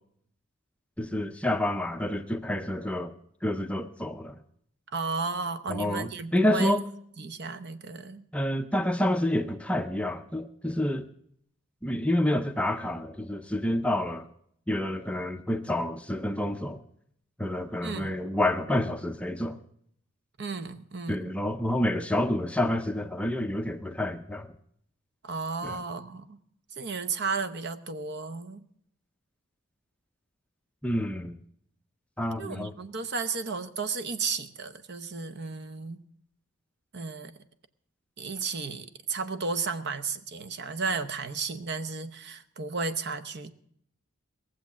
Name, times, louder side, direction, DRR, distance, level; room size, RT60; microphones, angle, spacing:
voice 1, 1.0-3.1 3.4-4.4 5.7-6.8 8.3-11.1 11.8-14.3 14.7-16.8 17.4-19.6 21.1-24.5 25.6-25.8 30.8-31.4 32.2-32.7, left 1 dB, 5° left, 7 dB, 0.5 m, -28 dB
voice 2, 4.9-6.7 7.2-8.2 17.8-18.2 20.4-21.4 25.2-26.4 26.8-28.6 32.4-36.0 36.9-37.3 38.2-43.5, right 4 dB, 50° right, 11 dB, 0.8 m, -33 dB
19.0 x 7.5 x 7.1 m, 0.68 s
head